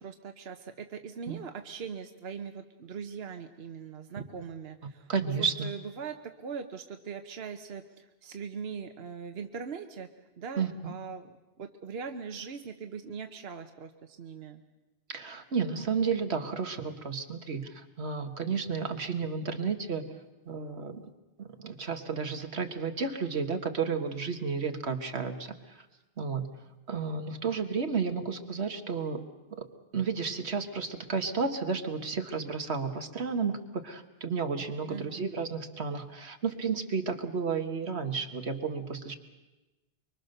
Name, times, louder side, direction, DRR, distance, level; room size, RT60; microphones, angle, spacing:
voice 1, 0.0-10.1 10.4-11.3 11.6-14.6 34.9-35.2, right 6 dB, 70° right, 7 dB, 1.2 m, -41 dB
voice 2, 5.1-5.7 10.6-11.0 15.1-20.1 20.5-21.1 21.4-25.9 26.2-26.5 26.9-29.2 29.6-29.7 29.9-39.1, right 5 dB, 90° right, 6 dB, 1.8 m, -32 dB
24.5 x 24.0 x 6.7 m, 1.1 s
omnidirectional pair, 1.1 m